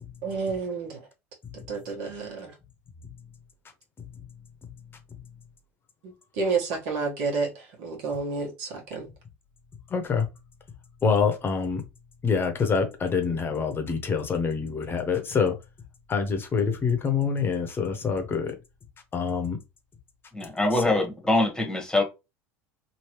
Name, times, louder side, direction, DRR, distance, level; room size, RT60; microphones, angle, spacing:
voice 1, 0.2-1.0 1.7-2.5 6.0-7.5 7.8-9.1, right 4 dB, 70° right, 1.4 m, -30 dB
voice 2, 9.9-10.3 11.0-11.8 12.2-15.5 16.1-18.6 19.1-19.6, left 5 dB, 30° left, 0.8 m, -26 dB
voice 3, 20.3-22.0, left 2 dB, 10° left, 1.2 m, -24 dB
3.1 x 2.7 x 3.0 m
hypercardioid pair, 90°, 7 cm